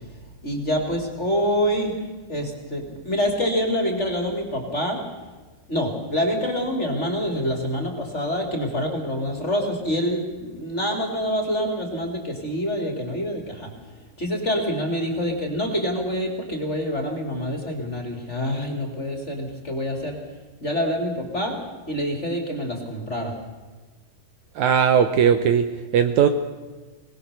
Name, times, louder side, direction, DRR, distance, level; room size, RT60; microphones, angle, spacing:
voice 1, 0.4-2.0 2.3-5.0 5.7-20.2 20.6-21.6 21.9-23.4, equal, 20° left, 2 dB, 2.7 m, -26 dB
voice 2, 24.6-25.7 25.9-26.3, right 8 dB, 70° right, 8 dB, 2.0 m, -18 dB
23.5 x 19.0 x 6.8 m, 1.3 s
omnidirectional pair, 3.8 m